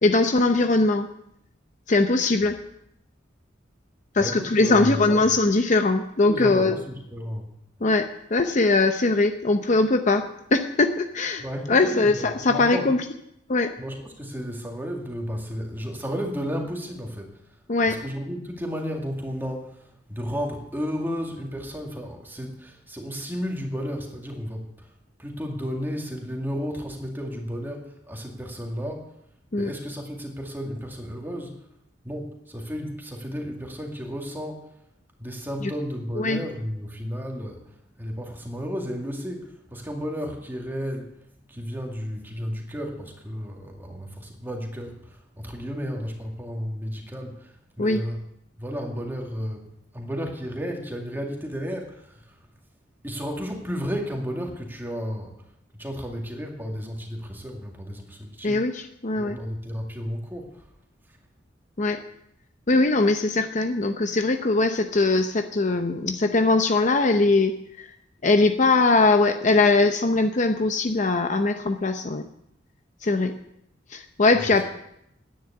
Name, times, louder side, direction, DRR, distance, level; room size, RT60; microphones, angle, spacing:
voice 1, 0.0-1.1 1.9-2.6 4.1-6.7 7.8-11.4 11.7-13.0 13.5-13.7 17.7-18.0 29.5-29.7 36.2-36.4 47.8-48.0 58.4-59.4 61.8-62.0 62.7-67.9 68.2-72.2 73.0-73.3 73.9-74.6, left 3 dB, 40° left, 7 dB, 0.7 m, -21 dB
voice 2, 4.2-5.3 6.3-7.5 11.4-12.9 13.8-17.6 17.8-24.9 25.2-29.1 29.6-31.7 32.0-34.7 35.2-41.2 41.5-48.2 48.6-52.5 53.0-55.4 55.7-58.8 59.2-60.6 61.1-61.2 74.3-74.6, equal, 10° right, 1 dB, 2.2 m, -33 dB
10.5 x 9.6 x 8.2 m, 0.78 s
head